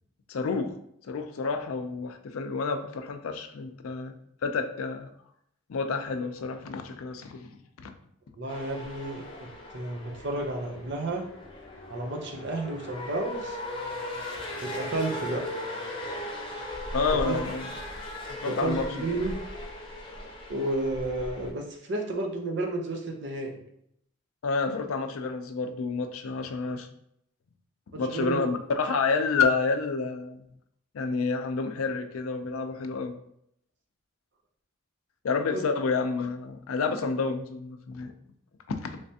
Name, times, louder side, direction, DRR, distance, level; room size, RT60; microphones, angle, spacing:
voice 1, 0.3-0.7 1.0-4.1 4.4-5.1 5.7-7.5 7.8-7.9 16.9-17.7 18.3-19.1 24.4-26.9 27.9-30.4 30.9-33.1 35.2-38.1 38.7-39.0, left 4 dB, 85° left, 7 dB, 0.4 m, -29 dB
voice 2, 8.4-11.2 11.9-13.6 14.6-15.4 17.2-17.4 18.4-19.4 20.5-23.6 27.9-28.4 35.5-35.6, right 2 dB, 55° right, 1 dB, 0.6 m, -32 dB
sound 1, 8.5-21.5, left 1 dB, 25° left, 0.6 m, -38 dB
3.3 x 3.2 x 2.7 m, 0.73 s
head